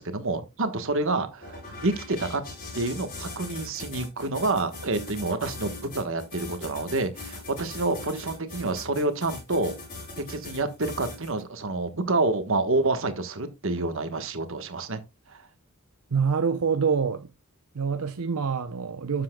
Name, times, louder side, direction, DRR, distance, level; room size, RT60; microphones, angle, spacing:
voice 1, 0.0-2.4 2.7-9.8 10.2-15.0 15.3-15.4, right 2 dB, 60° right, 1.3 m, -28 dB
sound 1, 1.4-11.4, left 3 dB, 40° left, 5.2 m, -40 dB
voice 2, 16.1-17.3 17.7-19.2, right 6 dB, 85° right, 0.7 m, -26 dB
12.0 x 7.4 x 2.3 m
head